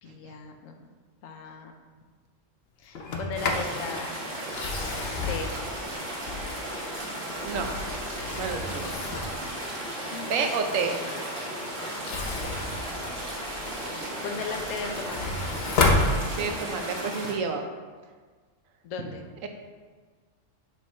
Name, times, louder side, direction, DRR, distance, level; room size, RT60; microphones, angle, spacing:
voice 1, 0.0-0.9 1.2-1.7 2.8-4.1 5.3-5.5 10.0-10.5 14.2-15.4 18.8-19.2, left 5 dB, 85° left, 5 dB, 1.0 m, -37 dB
Sliding door, 2.9-3.8 4.4-6.7 7.3-9.5 11.9-13.8 14.3-16.8, left 3 dB, 55° left, 0.8 m, -30 dB
sound 1, 3.3-17.3, right 1 dB, 45° right, 1.3 m, -35 dB
voice 2, 8.3-8.9 10.3-11.0 16.4-17.6 19.4-19.5, right 5 dB, 80° right, 5 dB, 1.1 m, -29 dB
6.9 x 3.3 x 4.2 m, 1.5 s
omnidirectional pair, 1.3 m